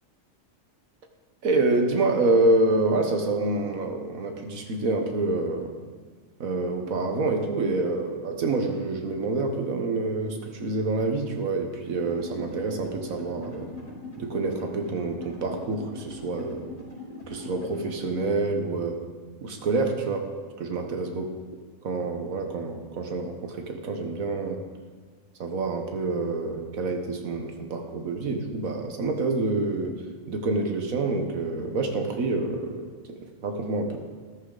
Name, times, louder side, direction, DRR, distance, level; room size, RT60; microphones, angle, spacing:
voice 1, 1.4-5.7 6.4-13.7 14.2-16.7 17.3-19.0 19.4-21.3 21.8-24.6 25.4-34.0, right 3 dB, 85° right, 4 dB, 1.7 m, -27 dB
sound 1, 12.0-18.3, left 2 dB, 75° left, 4.7 m, -41 dB
14.0 x 13.5 x 4.0 m, 1.5 s
omnidirectional pair, 1.4 m